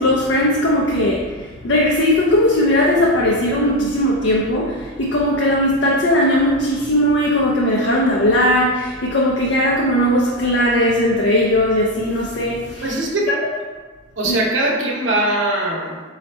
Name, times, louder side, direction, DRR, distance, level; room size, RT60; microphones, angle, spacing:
voice 1, 0.0-12.8 13.3-13.4 14.2-14.4, left 1 dB, 65° left, -3 dB, 0.5 m, -18 dB
voice 2, 12.8-13.3 14.2-16.0, right 1 dB, 85° right, -1 dB, 0.8 m, -21 dB
4.2 x 2.4 x 4.1 m, 1.4 s
head